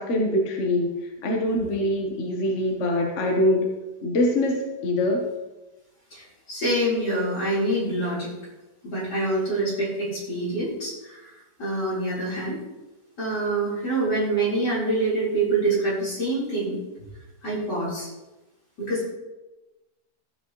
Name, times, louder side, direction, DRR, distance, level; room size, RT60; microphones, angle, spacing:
voice 1, 0.0-3.7 4.0-5.3, left 1 dB, 50° left, 1 dB, 1.5 m, -24 dB
voice 2, 6.1-8.3 8.8-12.6 13.2-16.8 17.4-18.1 18.8-19.1, right 2 dB, 85° left, -7 dB, 4.8 m, -26 dB
14.5 x 8.0 x 3.1 m, 1.1 s
omnidirectional pair, 1.8 m